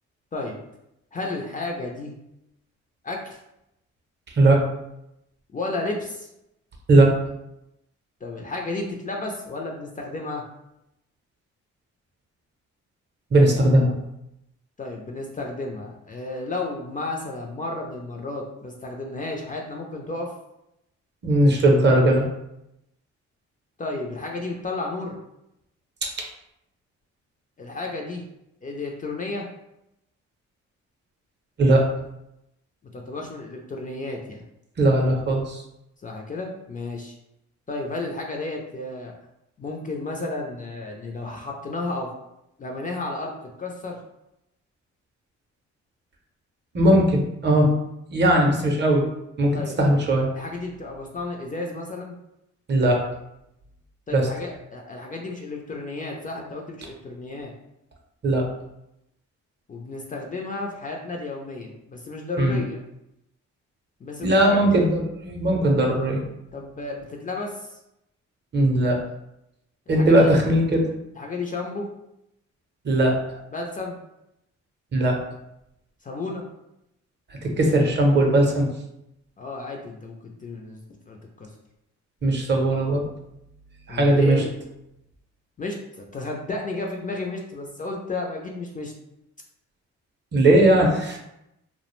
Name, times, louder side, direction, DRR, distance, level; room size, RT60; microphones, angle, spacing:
voice 1, 1.1-2.1 3.0-3.4 5.5-6.3 8.2-10.4 14.8-20.3 23.8-25.2 27.6-28.2 28.6-29.5 32.9-34.4 36.0-37.1 37.7-39.1 39.6-42.1 42.6-44.0 49.5-49.8 50.3-52.1 54.1-57.5 59.7-62.8 64.0-64.6 66.5-67.8 69.9-70.5 71.2-71.9 73.5-74.0 76.0-76.5 79.4-81.5 83.9-84.5 85.6-88.9, left 2 dB, 30° left, 0 dB, 0.4 m, -32 dB
voice 2, 13.3-13.9 21.2-22.3 31.6-31.9 34.8-35.6 46.7-47.7 48.1-49.0 49.4-50.3 52.7-53.0 54.1-54.3 58.2-58.4 62.4-62.6 64.2-66.2 68.5-69.0 69.9-70.8 72.8-73.4 74.9-75.2 77.3-78.7 82.2-83.1 83.9-84.4 90.3-91.2, right 1 dB, 35° right, 1 dB, 0.6 m, -19 dB
2.3 x 2.0 x 3.0 m, 0.85 s
cardioid pair, 90°, 30 cm